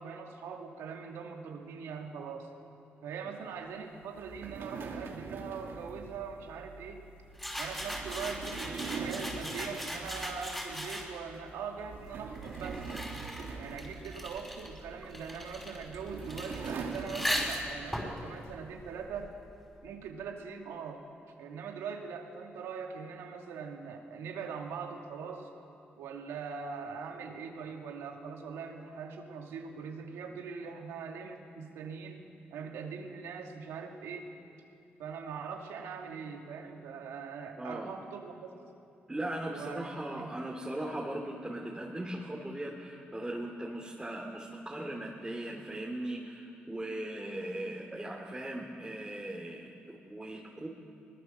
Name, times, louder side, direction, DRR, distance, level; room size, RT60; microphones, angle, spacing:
voice 1, 0.0-2.5 3.0-7.0 7.6-13.0 13.6-19.3 19.8-21.0 21.4-25.5 26.0-34.2 35.0-38.5 39.5-40.3, right 6 dB, 90° right, 2 dB, 2.3 m, -42 dB
sound 1, 4.1-10.7 11.1-11.3 11.8-14.8 15.6-18.0, right 5 dB, 70° right, 2.5 m, -43 dB
sound 2, 7.4-11.4 12.1-19.6, equal, 5° left, 5.3 m, -39 dB
voice 2, 37.6-37.9 39.1-50.7, right 1 dB, 15° right, -3 dB, 3.0 m, -39 dB
22.0 x 21.0 x 6.8 m, 2.5 s
cardioid pair, 75°, 4 cm